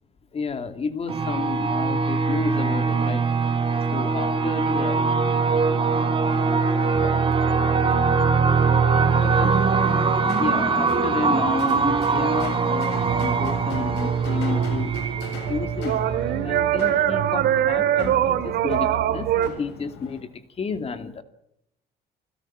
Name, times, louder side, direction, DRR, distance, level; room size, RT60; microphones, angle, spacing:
voice 1, 0.3-3.3 3.9-5.1 7.0-7.2 8.9-9.6 10.4-14.9 15.3-20.3 20.6-21.2, left 5 dB, 35° left, 2.5 m, -31 dB
sound 1, 1.1-16.4, right 4 dB, 30° right, 3.8 m, -22 dB
sound 2, 9.7-20.2, left 4 dB, 85° left, 7.1 m, -41 dB
sound 3, 12.9-19.5, right 11 dB, 75° right, 2.0 m, -24 dB
27.5 x 17.0 x 7.6 m
cardioid pair, 110°, 17 cm